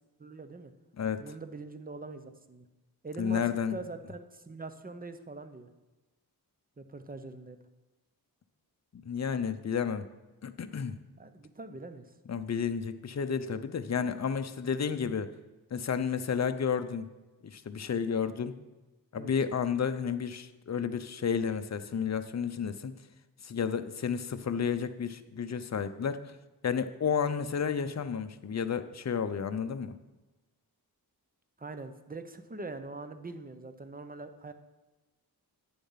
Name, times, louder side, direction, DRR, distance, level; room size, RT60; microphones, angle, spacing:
voice 1, 0.2-0.7 1.2-2.7 3.0-3.4 3.7-5.7 6.8-7.6 11.2-12.1 19.2-19.3 31.6-34.5, right 3 dB, 25° right, 9 dB, 0.8 m, -43 dB
voice 2, 3.2-3.8 8.9-10.1 10.4-11.0 12.3-15.3 15.7-17.0 17.4-18.6 19.1-23.0 23.4-26.2 26.6-29.9, left 7 dB, 45° left, 10 dB, 0.6 m, -31 dB
9.6 x 7.0 x 5.7 m, 1.1 s
wide cardioid pair, 95°, 38 cm